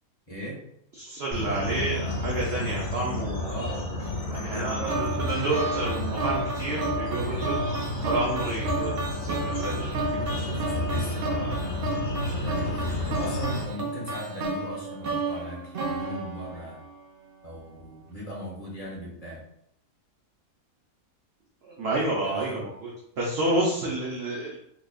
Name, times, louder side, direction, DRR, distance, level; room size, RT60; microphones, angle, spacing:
voice 1, 0.3-0.7 3.4-5.3 10.5-16.8 17.4-19.4 22.2-22.7, equal, 30° left, -5 dB, 0.9 m, -38 dB
voice 2, 1.0-3.5 4.4-7.8 8.0-8.9 9.3-9.9 10.3-10.5 21.6-22.9 23.2-24.6, right 2 dB, 55° right, -4 dB, 0.8 m, -30 dB
sound 1, 1.3-13.6, left 1 dB, 50° left, 0.4 m, -31 dB
sound 2, 4.9-17.1, right 2 dB, 90° right, 0.5 m, -32 dB
3.8 x 2.9 x 2.4 m, 0.71 s
omnidirectional pair, 1.6 m